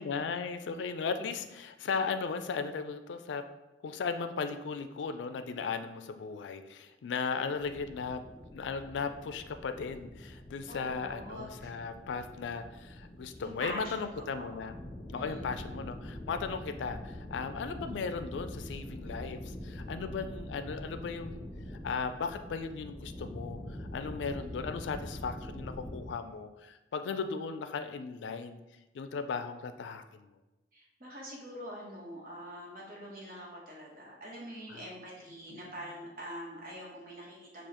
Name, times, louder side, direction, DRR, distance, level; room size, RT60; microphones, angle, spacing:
voice 1, 0.0-3.4 3.8-8.2 8.5-14.8 15.1-21.4 21.8-28.6 28.9-30.3 34.7-34.9 35.5-35.7, left 5 dB, 90° left, 9 dB, 0.3 m, -37 dB
sound 1, 7.6-26.1, left 1 dB, 25° left, 0.7 m, -44 dB
voice 2, 10.7-11.7 13.4-14.2 14.5-14.7 15.1-15.5 30.7-37.7, equal, 50° right, -4 dB, 1.2 m, -44 dB
6.8 x 2.4 x 2.9 m, 1.0 s
head